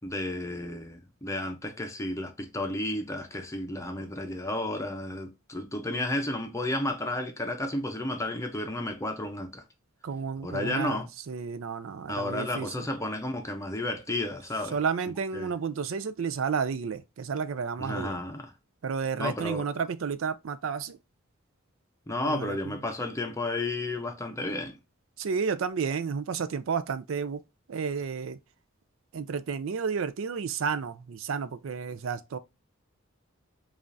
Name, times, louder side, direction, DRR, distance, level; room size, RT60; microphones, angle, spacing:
voice 1, 0.0-9.6 10.4-11.1 12.1-14.8 15.3-15.5 17.8-18.5 19.2-19.7 22.1-24.8, left 1 dB, 15° left, 0.6 m, -32 dB
voice 2, 10.0-12.7 14.7-18.2 18.8-21.0 22.2-22.6 25.2-27.4 27.7-28.4 29.1-32.4, right 6 dB, 70° right, 0.4 m, -31 dB
5.1 x 2.5 x 2.6 m
head